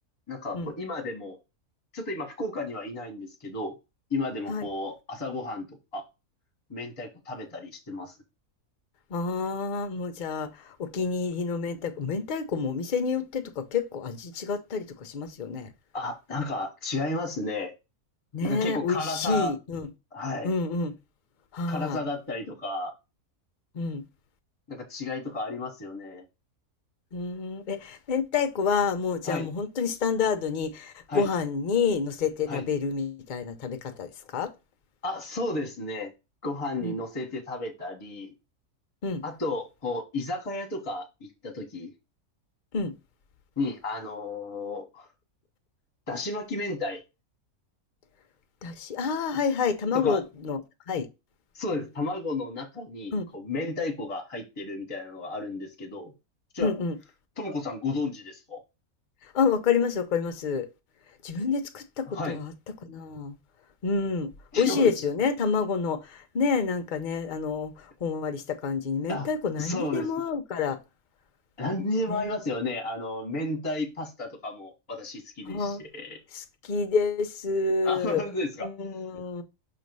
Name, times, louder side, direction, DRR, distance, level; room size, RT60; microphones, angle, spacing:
voice 1, 0.3-1.4 1.9-3.7 4.1-6.0 6.7-8.1 15.9-17.7 18.4-19.5 20.1-20.5 21.7-22.9 24.7-26.2 29.2-29.5 31.1-31.3 32.5-32.7 35.0-36.1 36.4-38.3 39.2-41.9 43.6-45.1 46.1-47.0 49.3-49.4 49.9-50.2 51.5-56.1 56.5-56.7 57.4-58.6 62.1-62.4 64.5-64.9 69.1-69.3 69.6-70.1 71.6-76.2 77.8-78.7, left 2 dB, 25° left, 1.2 m, -33 dB
voice 2, 9.1-15.7 18.3-19.9 20.4-20.9 21.5-22.0 23.7-24.0 27.1-34.5 36.8-37.0 39.0-39.2 42.7-42.9 48.6-50.6 50.9-51.1 53.1-53.3 56.6-57.0 59.2-60.7 61.2-62.5 62.9-63.4 63.8-70.8 72.1-72.3 75.5-75.8 76.3-78.3 78.6-79.4, left 5 dB, 45° left, 0.6 m, -28 dB
6.0 x 3.1 x 5.3 m
omnidirectional pair, 1.6 m